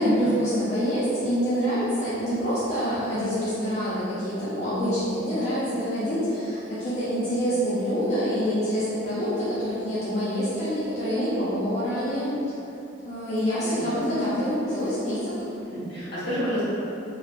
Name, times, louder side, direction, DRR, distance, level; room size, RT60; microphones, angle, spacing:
voice 1, 0.0-12.3 13.0-15.3, equal, 35° left, -11 dB, 0.5 m, -26 dB
voice 2, 13.6-14.1 15.7-16.6, equal, 70° left, -11 dB, 1.5 m, -31 dB
3.1 x 2.8 x 2.4 m, 2.9 s
head